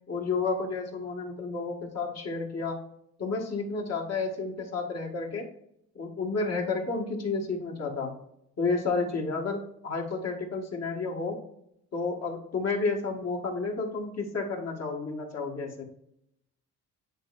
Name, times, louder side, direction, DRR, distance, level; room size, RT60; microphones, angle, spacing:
voice 1, 0.1-2.8 3.2-5.5 5.9-8.1 8.6-11.4 11.9-15.8, left 4 dB, 55° left, 1 dB, 1.7 m, -31 dB
9.1 x 4.2 x 2.5 m, 0.77 s
cardioid pair, 90°, 30 cm